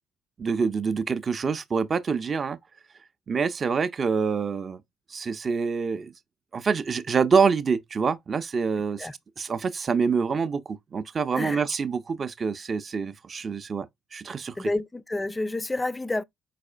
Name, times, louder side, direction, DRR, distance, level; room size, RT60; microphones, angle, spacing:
voice 1, 0.4-2.6 3.3-4.8 5.1-6.1 6.5-9.1 9.4-13.9 14.1-14.6, right 5 dB, 40° right, 0.5 m, -26 dB
voice 2, 14.6-16.2, left 2 dB, 15° left, 0.4 m, -29 dB
4.8 x 4.1 x 2.3 m
hypercardioid pair, 50°, 0 cm